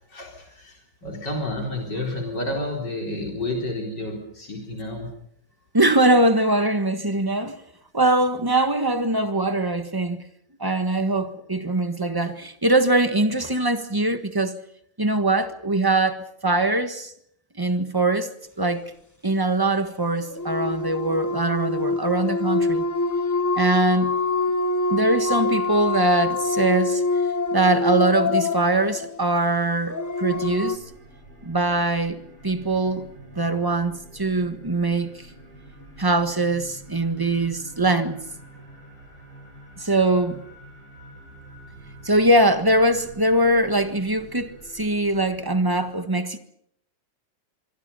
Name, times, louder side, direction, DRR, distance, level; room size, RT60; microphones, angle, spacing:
voice 1, 0.1-5.1, left 1 dB, 65° left, 4.6 m, -30 dB
voice 2, 5.7-7.6 7.9-10.2 10.6-14.6 15.0-17.1 17.6-18.8 19.2-22.8 23.5-24.1 24.9-27.0 27.5-30.8 31.4-33.1 33.3-35.3 36.0-38.2 39.8-40.4 42.0-46.4, right 2 dB, 15° right, 1.3 m, -22 dB
sound 1, 20.2-30.8, left 3 dB, 15° left, 0.6 m, -25 dB
sound 2, 30.2-45.8, right 1 dB, 60° right, 8.5 m, -46 dB
25.5 x 24.5 x 5.6 m
omnidirectional pair, 2.0 m